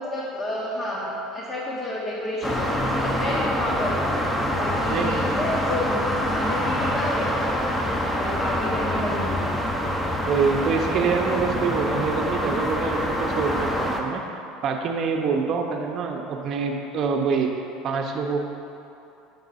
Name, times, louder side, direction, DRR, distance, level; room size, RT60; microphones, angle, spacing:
voice 1, 0.0-3.9 4.6-6.0 6.3-7.6 8.2-9.5, left 1 dB, 35° left, -5 dB, 1.0 m, -30 dB
sound 1, 2.4-14.0, equal, 10° left, 0.7 m, -25 dB
voice 2, 4.9-5.3 10.3-17.5 17.8-18.4, right 5 dB, 50° right, 3 dB, 0.7 m, -25 dB
6.8 x 4.5 x 4.1 m, 2.8 s
supercardioid pair, 100°, 0 cm